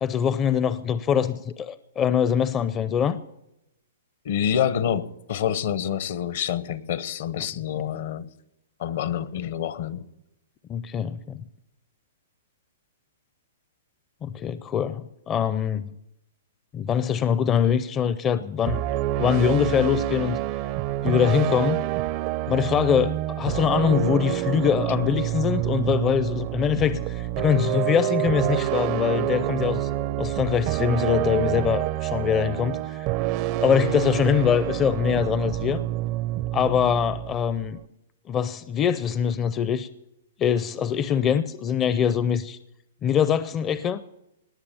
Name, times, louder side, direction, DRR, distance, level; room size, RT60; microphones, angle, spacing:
voice 1, 0.0-3.2 10.7-11.4 14.2-15.9 16.7-18.8 19.2-20.4 21.0-21.8 22.5-29.9 30.2-33.1 33.6-35.8 36.5-37.8 38.3-39.9 40.4-42.6 43.0-44.0, left 8 dB, 25° left, 0.5 m, -23 dB
voice 2, 4.2-8.3 8.8-10.0, left 9 dB, 60° left, 1.0 m, -27 dB
sound 1, 18.7-37.8, right 15 dB, 40° right, 0.5 m, -27 dB
19.5 x 7.3 x 6.9 m
hypercardioid pair, 135°, 0 cm